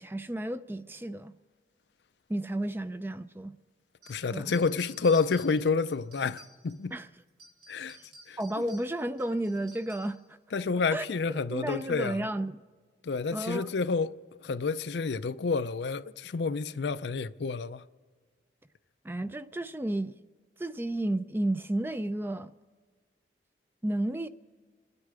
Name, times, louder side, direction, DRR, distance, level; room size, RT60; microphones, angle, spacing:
voice 1, 0.0-1.3 2.3-3.5 4.3-4.5 6.9-7.1 8.0-8.1 8.4-10.4 10.9-11.1 11.5-12.6 13.3-13.7 19.0-20.2 20.6-22.5 23.8-24.3, right 1 dB, 10° right, 0.4 m, -32 dB
sound 1, 4.0-6.9 7.3-10.3, right 2 dB, 80° right, 2.9 m, -54 dB
voice 2, 4.1-6.9 7.7-8.0 8.3-8.4 10.5-12.2 13.0-14.1 14.4-17.8, left 4 dB, 80° left, 0.5 m, -29 dB
27.5 x 9.8 x 5.0 m
head